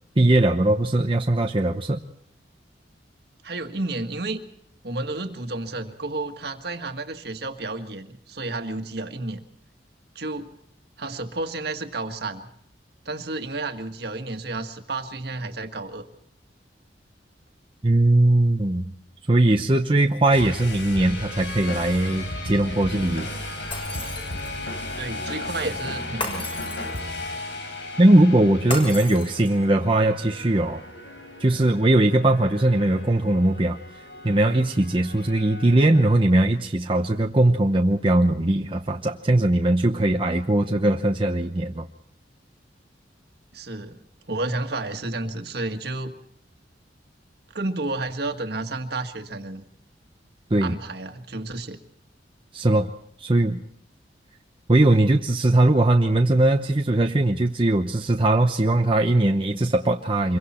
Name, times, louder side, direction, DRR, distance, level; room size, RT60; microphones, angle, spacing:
voice 1, 0.2-2.0 17.8-18.8 19.3-23.3 28.0-30.8 31.4-33.8 34.2-41.9 50.5-50.8 52.5-52.9 53.2-53.6 54.7-60.4, right 1 dB, 30° right, 3 dB, 0.8 m, -20 dB
voice 2, 3.4-4.4 4.8-9.4 10.2-10.6 11.0-12.5 13.1-16.1 25.0-26.5 43.5-44.0 44.3-46.2 47.5-49.7 50.6-51.8, right 2 dB, 60° right, 6 dB, 1.7 m, -31 dB
sound 1, 20.3-36.2, left 2 dB, 90° left, 4.1 m, -35 dB
Shatter, 23.7-24.6 26.2-27.2 28.7-29.7, left 1 dB, 30° left, 6.0 m, -34 dB
26.0 x 23.0 x 4.4 m, 0.69 s
head